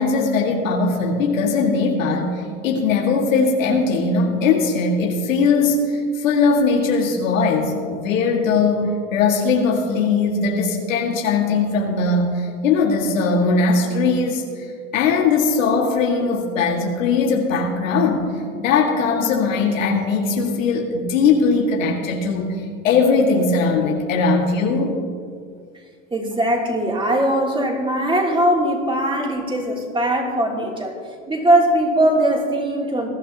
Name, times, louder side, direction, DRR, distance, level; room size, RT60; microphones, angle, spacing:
voice 1, 0.0-14.7 14.9-25.0, left 4 dB, 85° left, 0 dB, 2.0 m, -20 dB
voice 2, 26.1-30.9 31.3-33.1, right 1 dB, 15° right, -1 dB, 3.0 m, -20 dB
21.5 x 11.5 x 2.9 m, 2.1 s
hypercardioid pair, 95°, 38 cm